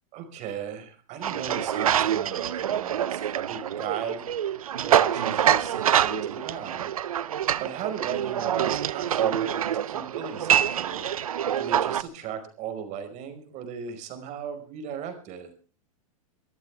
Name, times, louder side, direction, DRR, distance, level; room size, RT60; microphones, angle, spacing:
voice 1, 0.1-3.2 3.5-4.2 4.8-6.9 7.6-9.5 9.9-11.1 11.6-15.5, right 7 dB, 40° right, 7 dB, 5.1 m, -36 dB
sound 1, 1.2-12.0, right 10 dB, 85° right, 0.8 m, -26 dB
25.0 x 14.5 x 3.5 m, 0.36 s
hypercardioid pair, 115°, 18 cm